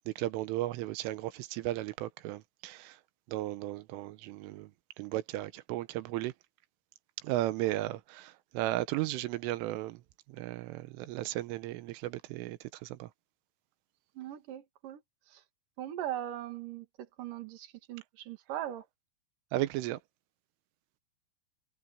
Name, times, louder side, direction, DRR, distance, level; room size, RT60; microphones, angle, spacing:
voice 1, 0.0-3.0 3.3-4.7 5.0-6.3 7.2-10.0 10.3-13.1 19.5-20.0, right 16 dB, 85° right, 3.4 m, -35 dB
voice 2, 14.2-15.0 15.3-15.4 15.8-16.9 17.2-18.8, right 11 dB, 55° right, 2.9 m, -39 dB
omnidirectional pair, 5.8 m